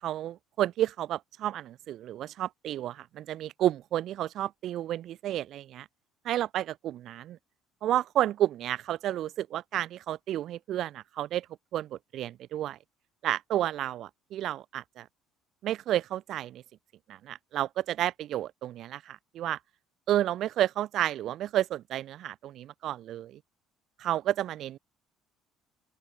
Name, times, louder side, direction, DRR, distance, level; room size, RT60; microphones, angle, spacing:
voice 1, 0.0-5.9 6.2-7.4 7.8-11.5 11.7-12.8 13.2-15.1 15.6-16.6 17.1-19.6 20.1-23.4 24.0-24.8, right 12 dB, 55° right, 5.8 m, -31 dB
open air
cardioid pair, 130°, 0 cm